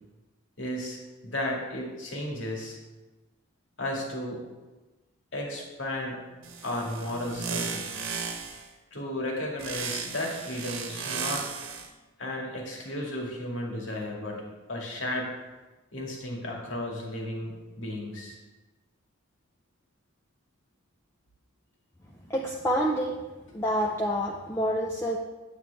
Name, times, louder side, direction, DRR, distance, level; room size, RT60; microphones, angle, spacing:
voice 1, 0.6-2.8 3.8-4.4 5.3-6.2 6.6-7.9 8.9-11.5 12.2-15.3 15.9-18.4, left 1 dB, 65° left, -1 dB, 2.2 m, -34 dB
sound 1, 6.4-8.7 9.6-11.9, right 5 dB, 80° right, 1.3 m, -35 dB
voice 2, 22.3-23.2 23.5-25.2, equal, 10° left, -2 dB, 0.6 m, -27 dB
9.0 x 8.9 x 3.5 m, 1.1 s
head